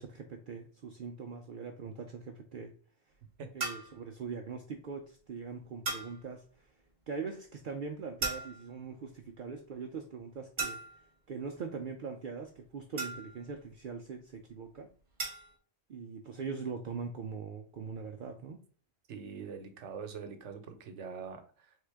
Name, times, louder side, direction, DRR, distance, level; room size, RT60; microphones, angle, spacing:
voice 1, 0.0-2.7 3.5-6.7 7.1-10.8 11.3-14.9 15.9-18.6, right 5 dB, 60° right, 2 dB, 0.6 m, -41 dB
sound 1, 3.6-4.0 5.9-6.2 8.2-8.8 10.6-11.1 13.0-13.5 15.2-15.5, right 3 dB, 40° right, 1.0 m, -37 dB
voice 2, 19.1-21.8, right 6 dB, 85° right, 7 dB, 1.1 m, -44 dB
3.7 x 3.6 x 3.4 m, 0.42 s
omnidirectional pair, 1.2 m